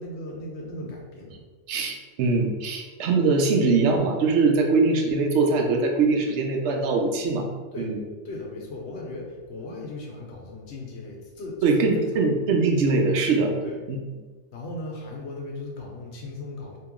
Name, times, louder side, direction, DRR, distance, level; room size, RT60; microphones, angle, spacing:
voice 1, 0.0-1.4 7.7-7.9 8.2-12.3 13.6-13.8 14.5-16.8, left 2 dB, 75° left, -1 dB, 1.0 m, -37 dB
voice 2, 1.7-7.5 7.8-8.0 11.6-13.5 13.9-14.0, right 3 dB, 80° right, 3 dB, 0.9 m, -22 dB
2.9 x 2.8 x 3.6 m, 1.3 s
omnidirectional pair, 1.2 m